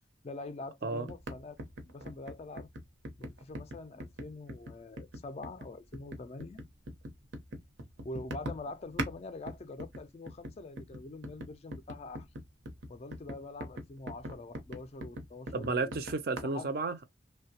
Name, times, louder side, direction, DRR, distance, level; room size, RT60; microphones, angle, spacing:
voice 1, 0.2-1.6 1.9-2.7 3.2-6.6 8.0-12.3 12.9-16.0 16.4-16.7, left 2 dB, 30° left, 0.3 m, -44 dB
sound 1, 1.1-9.2 9.5-16.4, right 1 dB, 75° right, 0.8 m, -42 dB
voice 2, 15.5-17.1, right 3 dB, 50° right, 0.5 m, -32 dB
3.1 x 2.2 x 2.7 m
head